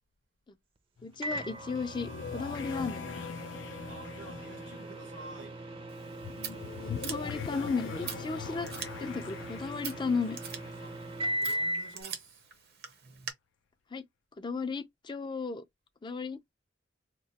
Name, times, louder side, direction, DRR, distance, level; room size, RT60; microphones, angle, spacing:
sound 1, 1.0-11.7, left 6 dB, 85° left, 0.4 m, -42 dB
voice 1, 1.0-3.1 6.9-8.7 9.0-10.4 13.9-14.0 14.4-15.6 16.0-16.5, left 4 dB, 25° left, 0.4 m, -34 dB
Microwave oven, 1.2-12.0, right 1 dB, 30° right, 0.5 m, -39 dB
voice 2, 3.9-5.6 10.8-11.0 11.4-12.5, right 2 dB, 90° right, 1.3 m, -49 dB
Scissors, 5.9-13.3, right 7 dB, 60° right, 0.8 m, -45 dB
3.0 x 2.1 x 4.0 m
head